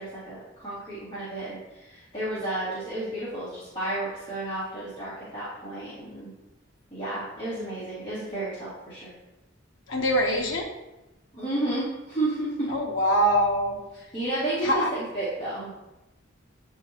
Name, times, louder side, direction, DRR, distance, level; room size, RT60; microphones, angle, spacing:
voice 1, 0.0-6.3 6.9-9.1 11.3-12.7 13.9-15.7, right 1 dB, 25° left, -13 dB, 2.1 m, -32 dB
voice 2, 9.9-10.7 12.7-13.8 14.6-14.9, equal, 75° left, 0 dB, 1.1 m, -23 dB
9.0 x 3.7 x 2.9 m, 0.99 s
head